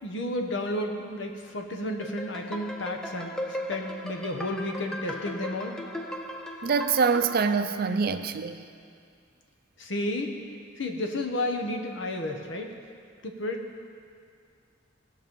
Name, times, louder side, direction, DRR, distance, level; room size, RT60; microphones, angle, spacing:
voice 1, 0.0-3.4 3.7-5.7 9.8-10.4 10.8-12.7 13.2-13.6, left 1 dB, 70° left, 4 dB, 1.2 m, -32 dB
sound 1, 2.0-7.5, left 1 dB, 5° left, 0.6 m, -37 dB
voice 2, 6.6-8.7, right 5 dB, 50° right, 9 dB, 0.5 m, -25 dB
18.5 x 6.2 x 5.5 m, 2.3 s
head